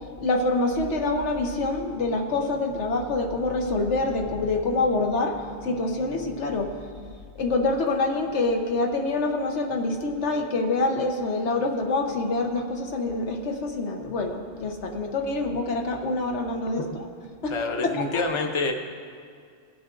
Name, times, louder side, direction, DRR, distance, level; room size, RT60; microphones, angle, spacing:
voice 1, 0.2-5.4 5.6-6.7 7.4-16.8 17.4-17.5 18.1-18.2, left 2 dB, 85° left, 3 dB, 1.3 m, -26 dB
voice 2, 17.5-18.7, left 3 dB, 30° left, 4 dB, 0.8 m, -27 dB
18.5 x 7.8 x 3.8 m, 2.2 s
omnidirectional pair, 1.1 m